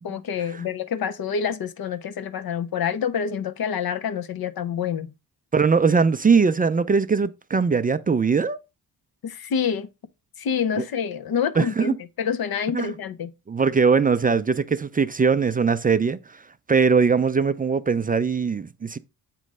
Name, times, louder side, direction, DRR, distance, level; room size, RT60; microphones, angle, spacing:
voice 1, 0.0-5.1 9.2-9.9 10.4-13.3, left 7 dB, 60° left, 0.8 m, -27 dB
voice 2, 5.5-8.6 10.8-10.9 11.6-11.9 12.7-12.9 13.5-16.4 16.7-19.0, right 5 dB, 25° right, 0.3 m, -21 dB
7.5 x 3.1 x 5.3 m
cardioid pair, 75°, 42 cm